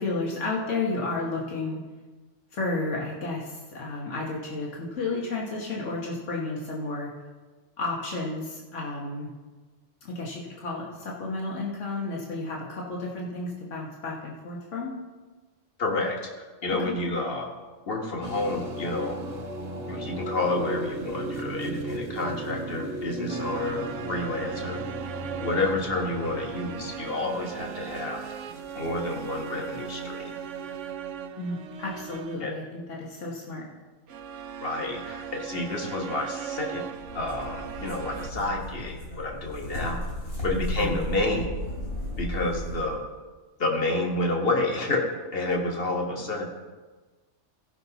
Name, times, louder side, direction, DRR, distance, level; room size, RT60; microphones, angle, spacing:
voice 1, 0.0-1.8 2.5-7.1 7.8-9.3 10.0-14.9 16.8-16.9 31.4-33.6 40.5-41.0, left 2 dB, 85° left, -3 dB, 1.7 m, -32 dB
voice 2, 15.8-17.5 17.9-19.2 19.9-24.8 25.4-28.2 28.7-30.3 32.4-32.5 34.6-36.8 37.1-40.0 40.4-41.5 42.2-43.0 43.6-45.0 45.3-46.5, left 2 dB, 50° left, 1 dB, 1.7 m, -29 dB
sound 1, 18.2-29.1, right 1 dB, 60° right, 1.1 m, -36 dB
sound 2, 23.3-32.5 34.1-38.3, right 8 dB, 80° right, 0.9 m, -38 dB
sound 3, 37.0-42.9, equal, 70° left, 3.8 m, -34 dB
16.5 x 5.7 x 4.0 m, 1.3 s
omnidirectional pair, 1.2 m